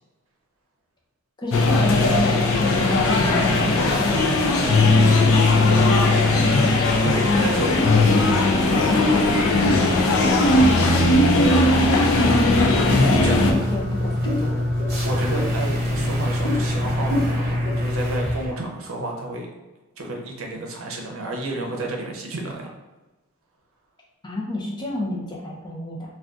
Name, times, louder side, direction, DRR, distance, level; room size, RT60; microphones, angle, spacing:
voice 1, 1.4-6.7 7.2-7.4 7.8-11.9 12.9-14.7 24.2-26.1, left 2 dB, 20° left, -3 dB, 0.5 m, -29 dB
sound 1, 1.5-13.5, left 2 dB, 75° left, 0.4 m, -18 dB
voice 2, 7.0-7.7 12.6-13.3 15.0-19.5 20.0-22.7, right 2 dB, 75° right, 0 dB, 0.6 m, -31 dB
sound 2, 11.1-18.5, equal, 50° right, 0.9 m, -35 dB
sound 3, 12.1-18.5, left 1 dB, 50° left, 1.0 m, -25 dB
2.5 x 2.3 x 3.5 m, 1.1 s
head